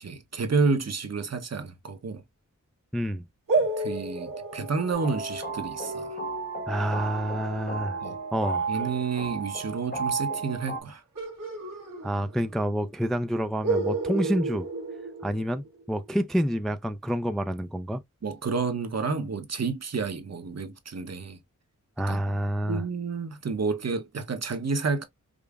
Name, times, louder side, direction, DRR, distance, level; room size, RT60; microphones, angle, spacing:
voice 1, 0.0-2.2 3.8-6.2 8.0-8.2 8.7-11.0 18.2-21.4 22.1-22.2 22.7-25.1, right 4 dB, 55° right, 0.8 m, -30 dB
voice 2, 2.9-3.2 6.7-8.0 8.3-8.7 12.0-14.7 15.2-18.0 22.0-22.8, equal, ahead, 0.3 m, -28 dB
sound 1, 3.5-8.9 11.1-12.6 12.9-13.0 13.6-15.8, right 3 dB, 90° right, 1.3 m, -32 dB
sound 2, 4.9-10.8, right 4 dB, 30° left, 1.0 m, -33 dB
5.0 x 2.0 x 2.3 m
wide cardioid pair, 60°, 32 cm